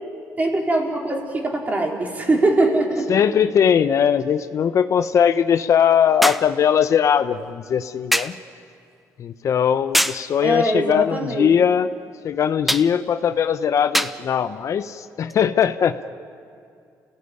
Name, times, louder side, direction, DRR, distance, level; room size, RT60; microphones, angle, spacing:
voice 1, 0.4-3.1 10.4-11.5, right 2 dB, 25° right, 0 dB, 4.5 m, -21 dB
sound 1, 2.4-2.5 6.2-6.6 8.1-8.4 9.9-10.3 12.7-12.9 13.9-14.2 15.3-15.4, equal, ahead, 0.8 m, -22 dB
voice 2, 3.1-8.4 9.2-11.9 12.2-16.1, left 8 dB, 55° left, 11 dB, 0.8 m, -20 dB
29.0 x 17.5 x 9.7 m, 2.4 s
cardioid pair, 110°, 6 cm